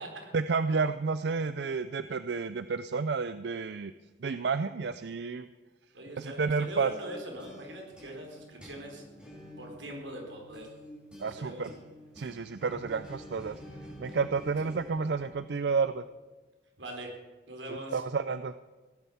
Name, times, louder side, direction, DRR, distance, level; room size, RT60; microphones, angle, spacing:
voice 1, 0.3-3.9 4.2-5.5 6.2-6.9 11.2-11.7 12.2-13.6 14.0-16.0 17.9-18.5, right 5 dB, 65° right, 13 dB, 0.5 m, -30 dB
voice 2, 5.9-9.0 9.6-10.7 11.3-11.7 14.6-14.7 16.8-17.1 17.5-18.0, right 1 dB, 85° right, 1 dB, 4.1 m, -42 dB
sound 1, 6.8-16.1, equal, 5° right, 5.4 m, -49 dB
16.5 x 10.5 x 7.1 m, 1.2 s
head